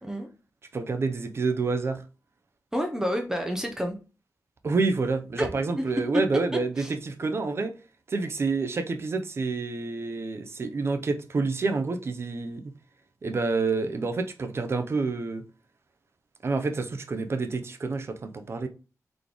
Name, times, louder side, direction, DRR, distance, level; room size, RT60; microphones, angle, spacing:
voice 1, 0.7-2.0 4.6-7.7 8.1-12.6 13.2-15.4 16.4-18.7, right 3 dB, 45° right, 0.6 m, -28 dB
voice 2, 2.7-4.0 5.4-6.2 6.5-6.9, equal, 10° right, 0.7 m, -29 dB
4.1 x 3.1 x 3.4 m
wide cardioid pair, 125°, 6 cm